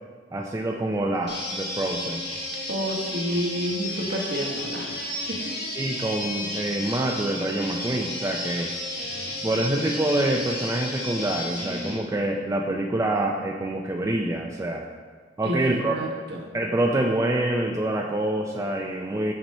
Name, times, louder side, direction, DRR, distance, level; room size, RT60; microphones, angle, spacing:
voice 1, 0.3-2.2 5.7-8.7 9.4-14.9 15.4-16.0 16.5-19.3, right 1 dB, 15° right, 0 dB, 0.4 m, -26 dB
sound 1, 1.3-11.9, left 1 dB, 60° left, 1.7 m, -33 dB
voice 2, 2.7-5.5 15.4-16.4, equal, 60° right, 0 dB, 1.1 m, -30 dB
5.9 x 4.2 x 5.4 m, 1.5 s
head